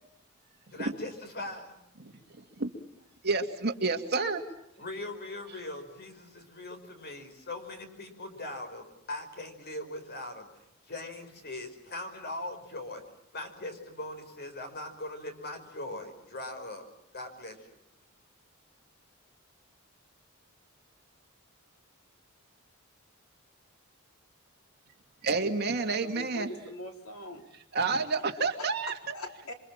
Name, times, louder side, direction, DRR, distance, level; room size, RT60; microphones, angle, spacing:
voice 1, 0.7-1.8 4.8-10.5 10.9-13.0 13.3-16.9 17.1-17.6, left 2 dB, 50° left, 7 dB, 5.3 m, -40 dB
voice 2, 3.2-4.4 25.2-26.5 27.7-28.9, right 4 dB, 50° right, 4 dB, 2.6 m, -29 dB
voice 3, 26.0-27.5 28.6-29.5, left 1 dB, 75° left, 3 dB, 4.1 m, -42 dB
28.0 x 25.0 x 7.5 m, 0.81 s
head